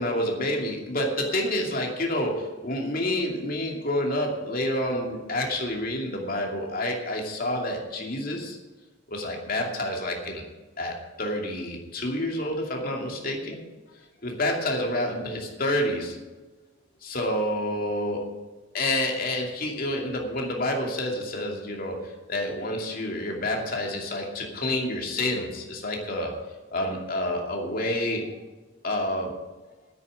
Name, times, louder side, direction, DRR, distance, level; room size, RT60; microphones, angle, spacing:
voice 1, 0.0-8.6 9.1-10.4 10.8-13.6 14.2-16.2 17.0-18.3 18.7-26.4 26.7-28.3 28.8-29.4, left 1 dB, 45° left, 1 dB, 2.6 m, -28 dB
10.5 x 9.1 x 8.7 m, 1.2 s
head